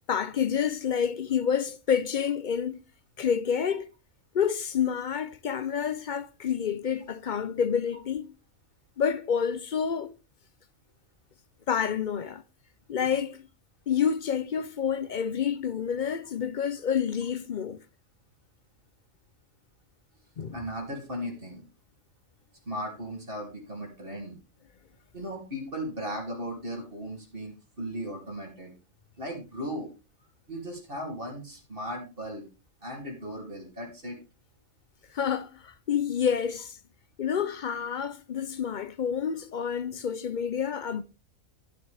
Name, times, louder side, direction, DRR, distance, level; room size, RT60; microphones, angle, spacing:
voice 1, 0.1-2.8 3.2-3.9 4.3-8.3 9.0-10.1 11.7-12.4 12.9-13.4 13.9-17.8 20.4-20.6 35.1-36.8 37.2-41.0, left 7 dB, 55° left, 0.5 m, -28 dB
voice 2, 20.5-21.7 22.6-24.4 25.1-28.7 29.2-29.9 30.5-32.4 32.8-34.2, equal, 40° right, 3.2 m, -37 dB
10.5 x 9.6 x 3.4 m
omnidirectional pair, 1.4 m